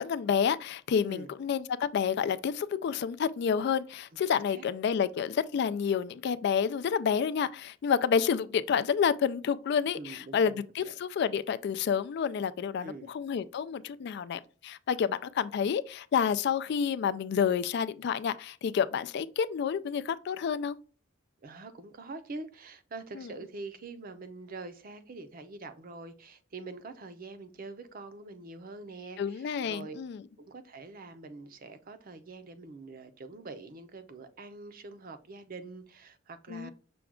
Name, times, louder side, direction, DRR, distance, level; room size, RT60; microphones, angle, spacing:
voice 1, 0.0-20.8 23.2-23.3 29.2-30.2 36.5-36.7, left 7 dB, 55° left, 0.3 m, -29 dB
voice 2, 4.3-4.6 9.9-10.9 12.8-13.1 21.4-30.0 30.4-36.7, right 3 dB, 45° right, 0.6 m, -45 dB
6.0 x 2.3 x 3.5 m
head